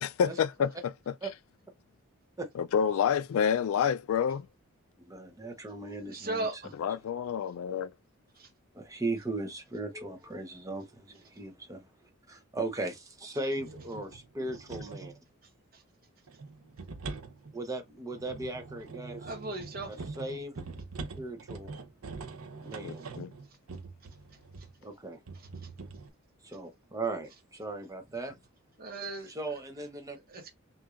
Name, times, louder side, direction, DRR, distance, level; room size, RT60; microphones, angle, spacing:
voice 1, 0.0-0.9 2.6-4.5 6.7-7.9 22.8-23.3, left 7 dB, 70° left, 0.3 m, -28 dB
voice 2, 5.0-6.6 8.7-11.9 12.3-15.1 17.5-19.3 19.9-20.6 21.1-21.7 22.6-23.1 24.8-25.2 26.4-28.3 29.3-30.2, right 2 dB, 15° right, 0.8 m, -37 dB
voice 3, 5.9-6.7 8.4-8.5 19.2-19.9 28.8-29.3 30.3-30.5, right 2 dB, 40° right, 1.2 m, -36 dB
sound 1, 13.6-15.2 16.3-24.8 25.3-26.1, right 4 dB, 85° right, 0.8 m, -43 dB
5.9 x 2.7 x 2.5 m
head